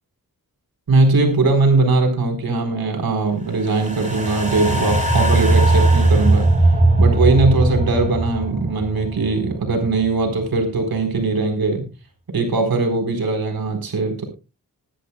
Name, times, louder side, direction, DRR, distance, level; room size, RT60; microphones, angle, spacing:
voice 1, 0.9-6.5 7.0-11.8 12.3-14.3, right 3 dB, 85° right, 4 dB, 4.2 m, -20 dB
sound 1, 3.6-10.0 10.4-10.5, right 2 dB, 20° right, 4.0 m, -18 dB
22.0 x 10.5 x 2.3 m, 0.29 s
cardioid pair, 65°, 35 cm